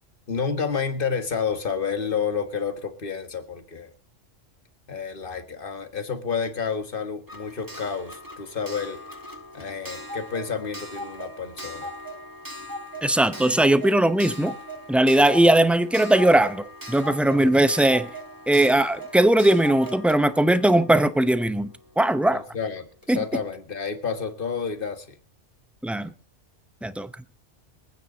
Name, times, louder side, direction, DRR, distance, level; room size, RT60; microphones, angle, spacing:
voice 1, 0.3-3.9 4.9-9.0 9.5-11.9 22.3-25.1, left 6 dB, 45° left, 1.7 m, -30 dB
Clock, 7.3-21.9 23.0-23.1 23.3-23.4, equal, 15° right, 1.5 m, -39 dB
voice 2, 13.0-14.5 14.9-18.1 18.5-22.4 23.1-23.2 25.8-26.1 26.8-27.1, right 1 dB, ahead, 0.4 m, -19 dB
24.5 x 9.2 x 4.0 m
omnidirectional pair, 1.3 m